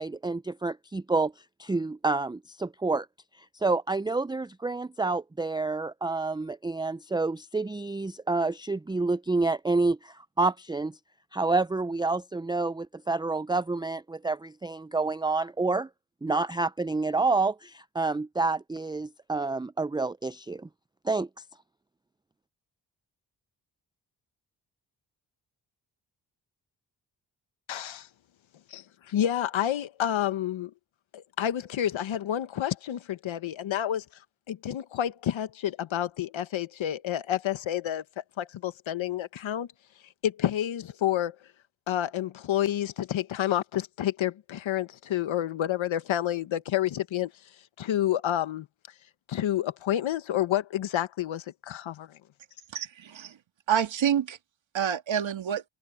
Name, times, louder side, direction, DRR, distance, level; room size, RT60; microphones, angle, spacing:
voice 1, 0.0-1.3 1.6-3.1 3.6-10.9 11.3-15.9 16.2-20.7 21.0-21.3, right 3 dB, 10° right, 0.5 m, -28 dB
voice 2, 27.7-28.0 28.7-30.7 31.1-34.0 34.5-38.0 38.4-39.7 40.2-41.4 41.9-47.3 47.8-48.7 49.3-52.2, left 11 dB, 80° left, 1.5 m, -29 dB
voice 3, 52.7-53.4 53.7-54.4 54.7-55.6, right 9 dB, 75° right, 2.3 m, -27 dB
supercardioid pair, 40°, 46 cm